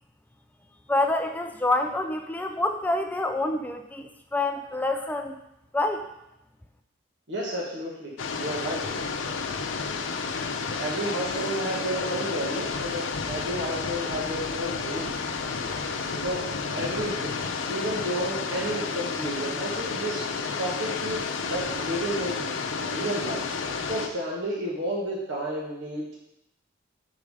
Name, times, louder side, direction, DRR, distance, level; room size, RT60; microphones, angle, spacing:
voice 1, 0.9-5.4 5.7-6.1, left 2 dB, 10° left, 5 dB, 0.4 m, -27 dB
voice 2, 7.3-8.8 10.8-15.2 16.2-17.3 17.7-20.2 20.6-22.5 22.8-23.4 23.9-26.2, right 1 dB, 65° right, -3 dB, 1.4 m, -31 dB
sound 1, 8.2-24.1, left 4 dB, 80° left, 0.6 m, -31 dB
6.3 x 5.4 x 4.8 m, 0.86 s
head